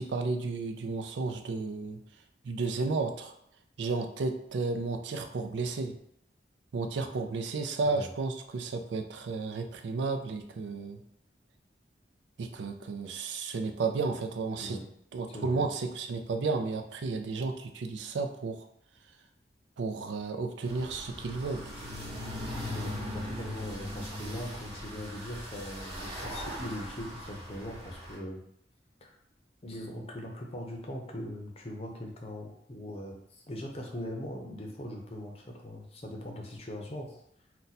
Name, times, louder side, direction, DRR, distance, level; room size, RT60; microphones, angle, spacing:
voice 1, 0.0-2.0 2.4-3.3 3.8-6.0 6.7-11.0 12.4-14.8 15.1-18.7 19.8-21.6, right 3 dB, 90° right, 6 dB, 0.4 m, -32 dB
voice 2, 15.3-15.6 22.7-28.4 29.0-29.1 29.6-37.2, left 1 dB, 35° left, 1 dB, 0.6 m, -40 dB
sound 1, 20.6-28.2, left 1 dB, 35° right, 1.1 m, -39 dB
2.6 x 2.2 x 4.0 m, 0.71 s
head